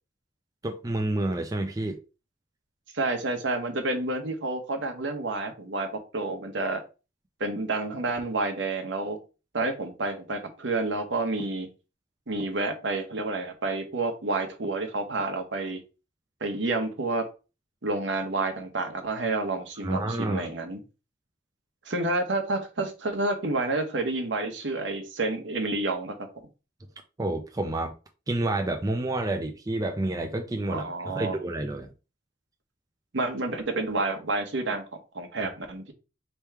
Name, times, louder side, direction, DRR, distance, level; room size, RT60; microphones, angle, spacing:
voice 1, 0.6-2.0 19.8-20.5 27.2-27.9 28.3-31.9, right 1 dB, 20° right, 0.4 m, -29 dB
voice 2, 2.9-5.9 6.1-6.8 7.4-9.2 9.5-11.7 12.3-15.8 16.4-17.3 17.8-20.8 21.9-26.3 30.7-31.4 33.1-34.8 35.1-35.9, right 2 dB, 70° right, 1.0 m, -29 dB
3.5 x 3.0 x 4.5 m
head